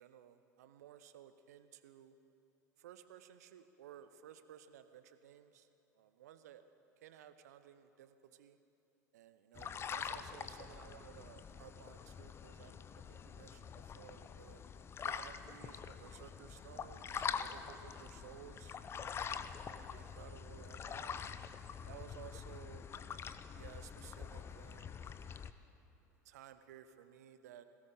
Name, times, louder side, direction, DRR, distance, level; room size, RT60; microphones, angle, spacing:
voice 1, 0.0-2.2 2.8-5.7 5.9-6.6 7.0-8.6 9.1-14.6 15.0-21.2 21.9-22.8 23.5-25.1 26.2-27.6, right 10 dB, 65° right, 11 dB, 0.8 m, -57 dB
sound 1, 9.6-25.5, left 7 dB, 25° left, 0.6 m, -45 dB
21.0 x 17.5 x 3.9 m, 2.9 s
figure-of-eight pair, 75°, 9 cm